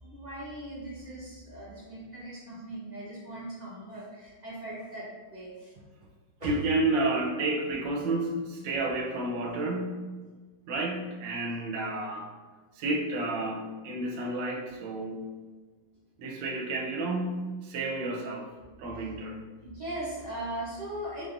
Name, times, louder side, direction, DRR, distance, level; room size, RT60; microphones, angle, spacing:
voice 1, 0.0-5.7 6.4-6.5 11.4-11.6 19.6-21.3, right 1 dB, 45° right, -9 dB, 0.5 m, -39 dB
voice 2, 6.4-10.1 10.7-12.3 12.8-15.2 16.2-18.5 18.8-19.4, right 2 dB, 75° right, 0 dB, 1.3 m, -31 dB
4.1 x 3.2 x 2.4 m, 1.4 s
omnidirectional pair, 2.3 m